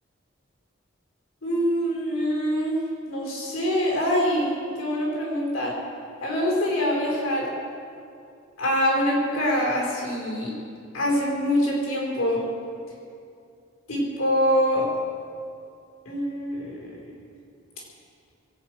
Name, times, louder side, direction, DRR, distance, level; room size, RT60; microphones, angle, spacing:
voice 1, 1.4-2.8 3.1-4.5 4.7-5.7 6.2-7.5 8.6-10.5 10.9-12.4 13.9-14.9 16.0-17.1, equal, 85° left, -2 dB, 4.9 m, -24 dB
22.5 x 9.2 x 6.5 m, 2.4 s
head